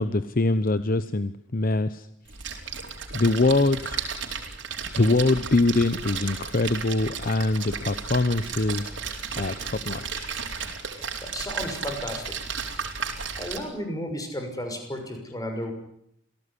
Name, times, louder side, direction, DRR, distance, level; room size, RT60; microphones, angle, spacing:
voice 1, 0.0-2.1 3.1-4.0 5.0-8.9 9.4-10.3 10.9-11.1, left 2 dB, 50° left, 12 dB, 0.9 m, -24 dB
Splash splatter, 2.3-13.6, right 6 dB, 70° right, 4.4 m, -34 dB
voice 2, 11.2-12.3 13.4-15.7, equal, 20° left, 5 dB, 6.3 m, -33 dB
27.0 x 18.0 x 10.0 m, 0.75 s
head